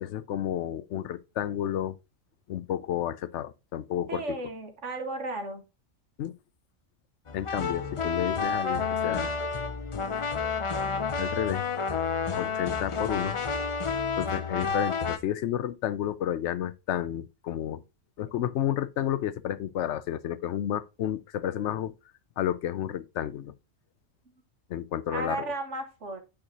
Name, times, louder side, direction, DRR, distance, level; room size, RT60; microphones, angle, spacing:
voice 1, 0.0-1.9 2.5-4.2 6.2-6.3 7.3-9.3 11.2-11.6 12.4-13.4 14.2-17.8 18.2-21.9 22.4-23.5 24.7-25.5, left 11 dB, 70° left, 0.8 m, -31 dB
voice 2, 4.1-5.6 25.1-26.2, right 2 dB, 65° right, 1.7 m, -34 dB
sound 1, 7.3-15.2, left 5 dB, 40° left, 0.4 m, -30 dB
8.7 x 4.9 x 2.8 m
omnidirectional pair, 1.4 m